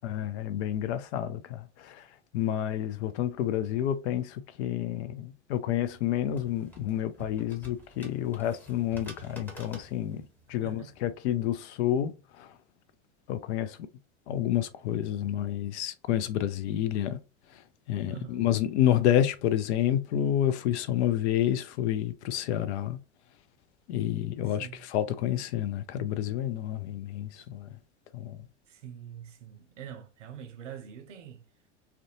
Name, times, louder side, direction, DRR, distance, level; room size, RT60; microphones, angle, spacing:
voice 1, 0.0-2.1 2.3-10.2 10.5-12.5 13.3-13.9 14.3-17.2 17.5-17.6 17.9-23.0 23.9-27.8 28.1-28.4, left 11 dB, 70° left, 0.5 m, -29 dB
sound 1, 5.7-11.1, right 1 dB, 5° left, 1.0 m, -49 dB
voice 2, 10.6-10.9 18.1-18.4 24.5-24.8 28.7-31.4, right 9 dB, 85° right, 0.6 m, -44 dB
2.5 x 2.1 x 2.7 m
hypercardioid pair, 85°, 35 cm